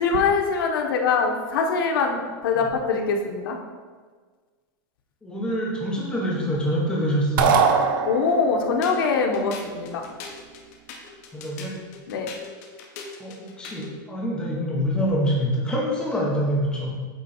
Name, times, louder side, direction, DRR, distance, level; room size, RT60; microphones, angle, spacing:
voice 1, 0.0-3.6 8.1-10.1 12.1-12.3, left 5 dB, 90° left, 2 dB, 1.0 m, -23 dB
voice 2, 5.2-7.6 11.3-11.7 13.2-16.9, equal, 10° left, -5 dB, 1.3 m, -25 dB
sound 1, 7.4-8.7, right 6 dB, 70° right, 0.7 m, -20 dB
sound 2, 8.8-14.0, left 5 dB, 45° left, 1.0 m, -41 dB
8.6 x 3.5 x 4.4 m, 1.5 s
supercardioid pair, 170°, 11 cm